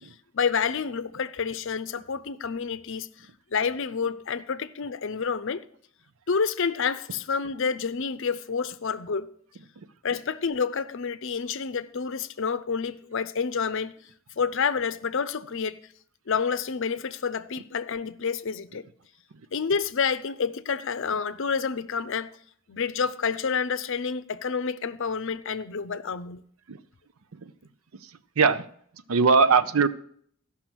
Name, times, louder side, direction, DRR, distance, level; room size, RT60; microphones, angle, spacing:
voice 1, 0.3-3.1 3.5-5.6 6.3-9.3 10.0-13.9 14.4-15.8 16.3-18.8 19.5-22.3 22.7-26.4, left 6 dB, 60° left, 0.6 m, -28 dB
voice 2, 29.1-29.9, right 5 dB, 85° right, 0.6 m, -20 dB
14.5 x 6.0 x 6.1 m
head